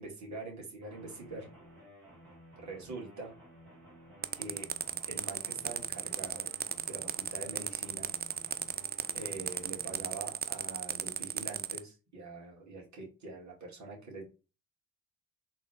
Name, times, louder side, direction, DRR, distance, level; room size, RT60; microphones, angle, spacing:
voice 1, 0.0-1.5 2.6-3.3 4.3-4.7 5.1-6.5 6.9-8.1 9.1-14.2, right 3 dB, 40° right, -3 dB, 2.1 m, -44 dB
sound 1, 0.8-10.3, right 1 dB, 90° right, 1.4 m, -55 dB
sound 2, 4.2-11.8, right 8 dB, 25° right, 0.4 m, -35 dB
3.6 x 2.8 x 3.5 m, 0.32 s
hypercardioid pair, 40°, 41 cm